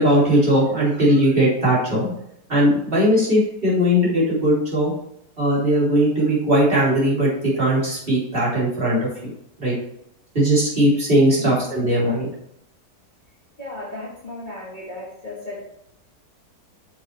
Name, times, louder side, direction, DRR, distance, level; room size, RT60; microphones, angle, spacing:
voice 1, 0.0-2.1 2.5-4.9 5.4-9.3 9.6-9.8 10.3-12.3, equal, 30° right, -7 dB, 3.9 m, -19 dB
voice 2, 11.2-11.7 13.6-15.6, left 2 dB, 25° left, -6 dB, 1.9 m, -35 dB
8.6 x 7.0 x 3.4 m, 0.75 s
omnidirectional pair, 1.8 m